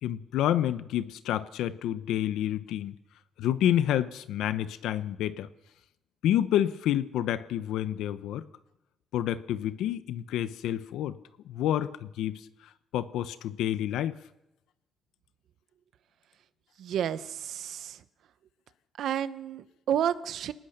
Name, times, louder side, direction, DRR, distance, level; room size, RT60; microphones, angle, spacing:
voice 1, 0.0-3.0 3.4-5.5 6.2-8.5 9.1-11.2 11.4-14.2, left 11 dB, 85° left, 13 dB, 1.0 m, -29 dB
voice 2, 16.8-18.0 19.0-20.5, right 9 dB, 70° right, 13 dB, 1.0 m, -31 dB
24.0 x 19.0 x 6.8 m, 0.93 s
cardioid pair, 90°, 0 cm